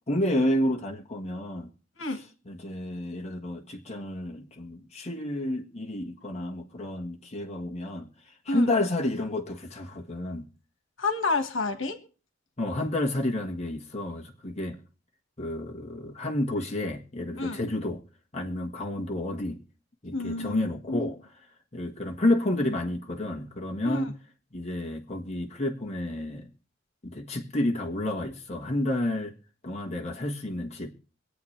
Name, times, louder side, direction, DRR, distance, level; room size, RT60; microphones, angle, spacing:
voice 1, 0.1-1.7 2.5-8.1 8.4-10.5 12.6-14.8 15.4-18.0 18.3-19.6 20.0-21.2 21.7-24.1 24.5-26.5 27.0-29.3 29.6-30.9, left 1 dB, 35° left, 1.5 m, -30 dB
voice 2, 11.0-12.0 17.4-17.6 20.1-21.1 23.8-24.1, left 3 dB, 75° left, 1.7 m, -29 dB
25.5 x 8.7 x 3.3 m
head